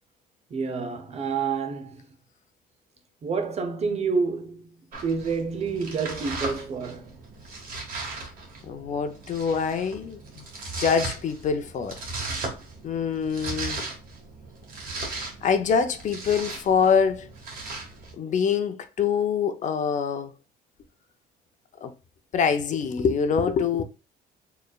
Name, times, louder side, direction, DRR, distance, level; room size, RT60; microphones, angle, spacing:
voice 1, 0.5-2.0 3.2-4.7 5.0-7.2, right 5 dB, 40° right, 0.7 m, -28 dB
Domestic sounds home sounds, 4.9-18.1, right 3 dB, 55° right, 1.5 m, -37 dB
voice 2, 8.6-10.4 10.8-12.0 12.8-13.9 15.0-17.3 18.1-20.3 21.8-21.9 22.3-23.8, left 6 dB, 45° left, 0.5 m, -25 dB
4.2 x 3.2 x 2.3 m
cardioid pair, 110°, 17 cm